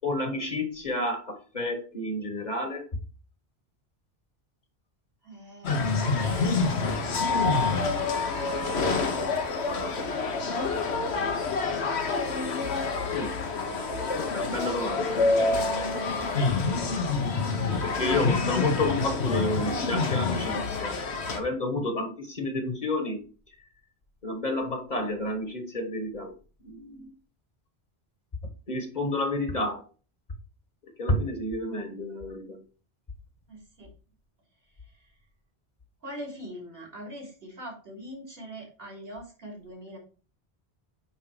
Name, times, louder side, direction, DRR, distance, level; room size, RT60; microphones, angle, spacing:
voice 1, 0.0-2.8 6.8-7.0 13.1-13.3 14.1-15.3 17.8-21.0 21.3-23.2 24.2-26.3 26.6-27.1 28.7-29.8 31.0-32.6, left 1 dB, 45° left, 6 dB, 1.3 m, -30 dB
voice 2, 5.2-6.6 8.4-9.1 33.5-33.9 36.0-40.0, equal, 65° right, -1 dB, 3.3 m, -42 dB
sound 1, 5.6-21.4, left 4 dB, 90° left, 1.4 m, -27 dB
8.9 x 3.6 x 4.8 m, 0.37 s
omnidirectional pair, 1.1 m